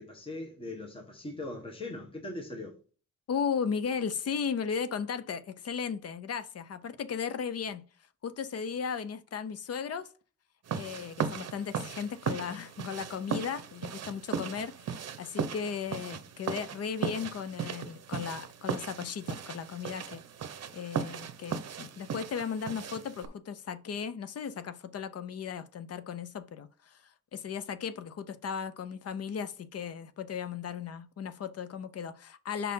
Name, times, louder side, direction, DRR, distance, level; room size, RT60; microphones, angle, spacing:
voice 1, 0.0-2.8, left 2 dB, 20° left, 1.2 m, -40 dB
voice 2, 3.3-7.8 8.2-10.1 10.7-20.2 20.7-32.7, left 6 dB, 55° left, 0.5 m, -36 dB
sound 1, 10.7-23.3, right 7 dB, 60° right, 0.7 m, -37 dB
5.4 x 4.2 x 5.4 m
wide cardioid pair, 145°, 30 cm